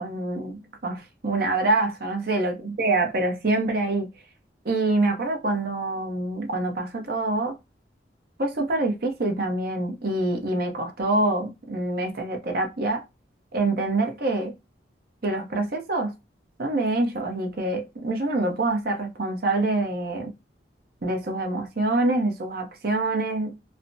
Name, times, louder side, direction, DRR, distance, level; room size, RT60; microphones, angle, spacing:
voice 1, 0.0-4.1 4.6-7.5 8.4-13.0 13.5-14.5 15.2-16.1 16.6-20.3 21.0-23.6, right 2 dB, 55° right, 0.7 m, -26 dB
3.2 x 2.0 x 2.6 m
head